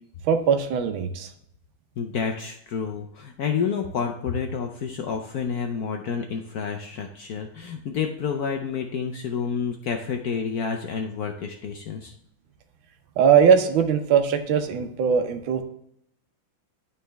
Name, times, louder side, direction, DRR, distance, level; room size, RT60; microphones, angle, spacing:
voice 1, 0.2-1.3 13.2-15.6, right 7 dB, 75° right, 7 dB, 1.5 m, -20 dB
voice 2, 2.0-12.1, left 6 dB, 70° left, 4 dB, 0.9 m, -29 dB
11.0 x 4.2 x 3.4 m, 0.75 s
omnidirectional pair, 2.2 m